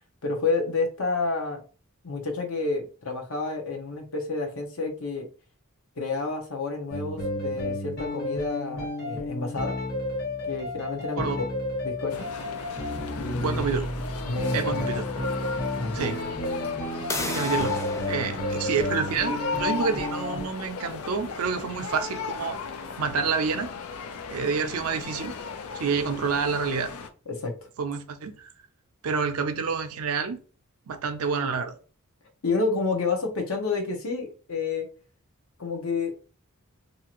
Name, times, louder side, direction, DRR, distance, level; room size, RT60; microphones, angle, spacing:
voice 1, 0.2-1.6 2.0-5.3 6.0-9.8 10.4-11.4 11.8-12.3 13.2-13.6 14.2-15.0 15.7-16.1 27.3-27.6 32.4-34.9 35.6-36.2, left 3 dB, 70° left, 0.8 m, -29 dB
sound 1, 6.9-20.4, left 1 dB, 50° left, 1.5 m, -32 dB
sound 2, 12.1-27.1, left 5 dB, 90° left, 0.4 m, -36 dB
voice 2, 13.4-13.9 14.5-15.1 15.9-16.2 17.2-17.8 18.1-22.6 23.0-23.7 24.3-25.4 25.7-26.9 27.8-28.5 29.0-30.4 30.9-31.7, right 5 dB, 85° right, 0.5 m, -28 dB
sound 3, 17.1-22.7, left 2 dB, 15° left, 0.3 m, -38 dB
2.7 x 2.4 x 2.9 m
head